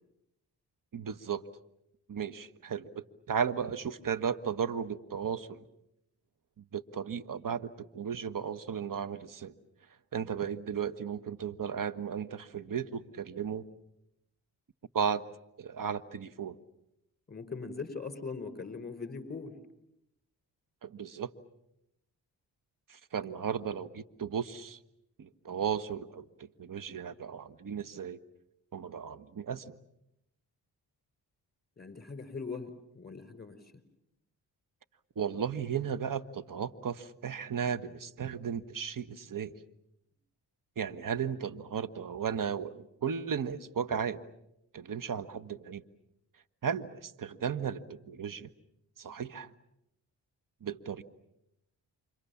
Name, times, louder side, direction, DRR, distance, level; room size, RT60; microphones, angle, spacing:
voice 1, 0.9-1.4 2.1-5.6 6.7-9.5 10.1-13.6 14.9-15.2 15.6-16.6 20.8-21.3 22.9-24.8 25.2-26.3 26.6-28.2 28.7-29.7 35.2-39.5 40.8-44.2 44.7-45.8 46.6-48.5 49.0-49.5 50.6-51.0, right 7 dB, 50° right, 14 dB, 1.4 m, -35 dB
voice 2, 17.3-19.6 31.8-33.6, left 4 dB, 25° left, 12 dB, 5.1 m, -40 dB
29.5 x 26.0 x 7.3 m, 0.82 s
supercardioid pair, 55°, 42 cm